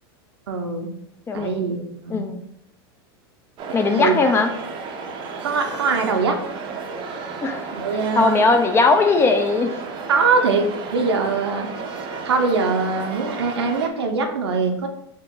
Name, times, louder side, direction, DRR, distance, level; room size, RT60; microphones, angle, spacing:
voice 1, 0.5-0.9 1.3-2.2 3.7-4.3 5.4-6.4 7.7-8.4 10.1-11.7 12.2-14.9, right 4 dB, 90° right, 4 dB, 0.6 m, -22 dB
voice 2, 2.1-2.4 3.7-4.5 7.4-7.7 8.2-9.8, left 3 dB, 20° left, 6 dB, 0.4 m, -19 dB
sound 1, 3.6-13.9, right 4 dB, 35° right, 0.5 m, -33 dB
2.9 x 2.5 x 3.6 m, 0.76 s
hypercardioid pair, 115°, 13 cm